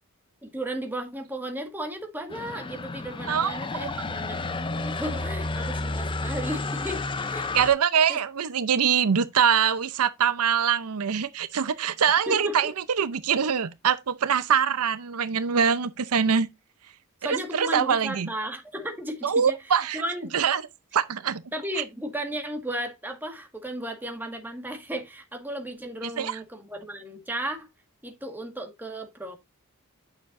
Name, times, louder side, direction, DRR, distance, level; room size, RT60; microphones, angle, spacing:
voice 1, 0.4-7.5 8.1-8.2 12.3-12.7 17.2-19.5 19.9-20.3 21.5-27.7 28.0-29.4, right 1 dB, 10° right, 1.7 m, -34 dB
sound 1, 2.3-7.7, left 3 dB, 20° left, 0.5 m, -31 dB
voice 2, 3.3-3.6 7.5-12.7 13.0-16.5 17.2-18.3 19.2-20.0 20.3-20.6 20.9-21.4 26.2-26.4, right 7 dB, 85° right, 0.6 m, -23 dB
8.9 x 6.8 x 2.5 m
head